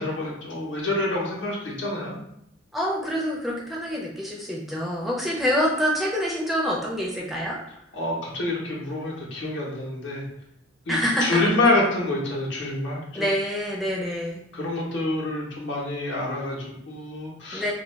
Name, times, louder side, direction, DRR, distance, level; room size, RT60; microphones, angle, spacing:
voice 1, 0.0-2.2 7.9-10.2 10.9-13.3 14.5-17.6, left 2 dB, 65° left, -3 dB, 0.8 m, -27 dB
voice 2, 2.7-7.6 10.9-11.4 13.2-14.4 17.5-17.7, equal, ahead, -4 dB, 0.4 m, -26 dB
2.3 x 2.1 x 3.1 m, 0.77 s
head